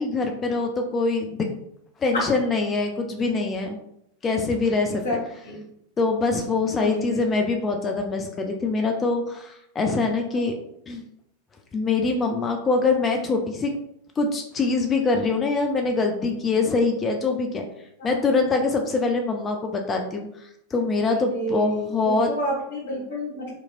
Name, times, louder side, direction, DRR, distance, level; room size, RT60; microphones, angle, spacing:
voice 1, 0.0-1.5 2.0-3.8 4.2-5.0 6.0-10.5 10.9-11.0 11.7-13.7 14.2-17.6 18.0-22.3, left 3 dB, 20° left, 3 dB, 0.4 m, -24 dB
voice 2, 6.7-7.2 10.3-10.4 18.0-18.2 21.1-21.8 22.3-23.5, equal, 65° left, -11 dB, 1.5 m, -29 dB
2.9 x 2.6 x 2.4 m, 0.74 s
figure-of-eight pair, 90°, 0 cm